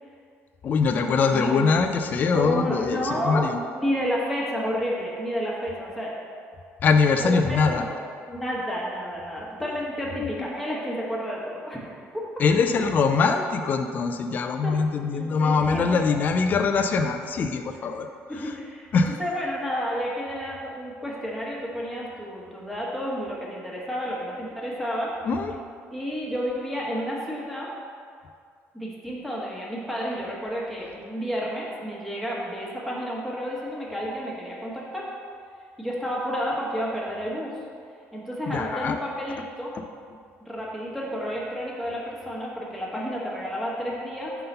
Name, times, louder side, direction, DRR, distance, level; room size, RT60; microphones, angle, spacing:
voice 1, 0.6-3.6 6.8-7.8 10.2-10.5 12.4-18.1 18.3-18.5 18.9-19.2 25.3-25.6 38.5-39.0, left 5 dB, 35° left, 6 dB, 0.3 m, -23 dB
voice 2, 1.3-1.7 2.3-6.1 7.2-7.9 8.3-12.0 12.4-12.5 14.6-14.7 15.1-16.2 18.3-25.1 25.9-27.7 28.7-35.1 35.8-37.6 38.1-39.7 40.5-44.4, equal, ahead, -5 dB, 1.2 m, -31 dB
5.6 x 3.8 x 5.3 m, 2.2 s
cardioid pair, 140°, 5 cm